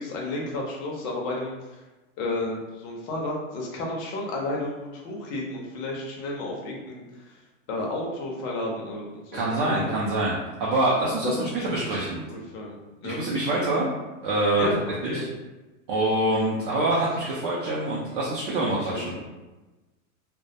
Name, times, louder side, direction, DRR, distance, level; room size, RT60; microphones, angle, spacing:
voice 1, 0.0-1.8 2.2-7.4 7.7-10.0 11.2-13.2 13.5-13.6 14.6-15.3 16.7-16.9 18.7-19.2, left 2 dB, 35° left, -2 dB, 0.5 m, -32 dB
voice 2, 9.3-12.2 13.0-13.9 14.2-14.7 15.0-15.3 15.9-19.1, right 2 dB, 40° right, -5 dB, 0.4 m, -25 dB
2.2 x 2.1 x 2.6 m, 1.1 s
supercardioid pair, 150°, 41 cm